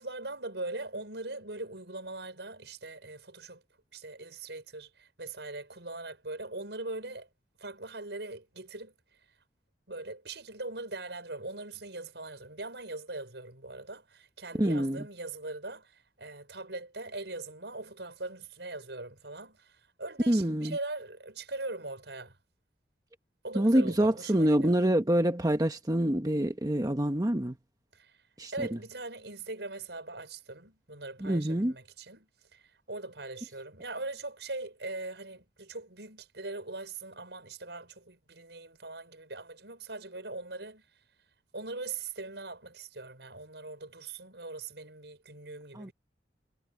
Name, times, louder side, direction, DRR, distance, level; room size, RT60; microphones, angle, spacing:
voice 1, 0.0-3.6 3.9-7.3 7.6-8.9 9.9-22.4 23.4-24.8 27.9-28.2 28.5-40.9 41.5-45.9, right 2 dB, 75° right, 6.3 m, -41 dB
voice 2, 14.6-15.0 20.3-20.8 23.5-27.5 28.4-28.5 31.2-31.7 45.7-45.9, right 1 dB, 20° right, 1.1 m, -26 dB
head